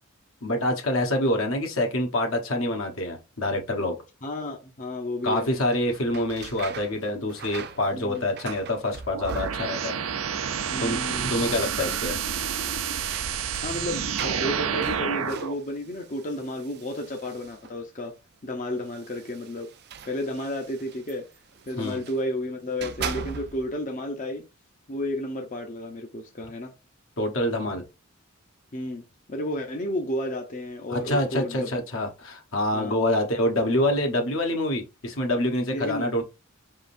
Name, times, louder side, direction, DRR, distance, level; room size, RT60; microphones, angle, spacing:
voice 1, 0.4-4.0 5.2-10.0 10.8-12.2 21.8-22.0 27.2-27.8 30.9-36.2, left 1 dB, 70° left, 1.1 m, -26 dB
voice 2, 4.2-5.5 7.9-8.2 10.7-11.4 13.3-18.1 18.4-19.7 20.0-21.3 21.7-24.4 24.9-26.7 28.7-31.7 32.7-33.0 35.7-36.1, left 1 dB, 35° left, 0.7 m, -32 dB
sound 1, 5.6-10.0 10.3-11.0 11.3-11.4 12.5-17.9 18.7-22.2 22.6-23.8, right 6 dB, 50° right, 0.5 m, -41 dB
sound 2, 9.1-15.5, right 7 dB, 90° right, 0.6 m, -29 dB
5.2 x 3.7 x 2.6 m
head